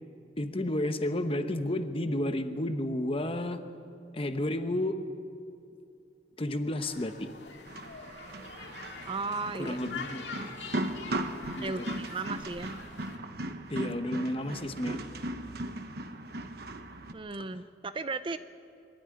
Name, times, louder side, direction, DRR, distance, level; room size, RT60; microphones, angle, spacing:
voice 1, 0.4-3.6 4.1-5.0 6.4-7.3 9.6-10.3 11.6-11.9 13.7-15.0, left 1 dB, 30° left, 8 dB, 1.0 m, -31 dB
sound 1, 6.8-13.2, left 5 dB, 70° left, 2.1 m, -45 dB
sound 2, 7.7-17.1, right 1 dB, 60° right, 1.1 m, -38 dB
voice 2, 9.1-9.8 11.6-12.7 17.1-18.4, right 3 dB, 30° right, 12 dB, 0.5 m, -35 dB
23.0 x 13.0 x 9.9 m, 2.5 s
head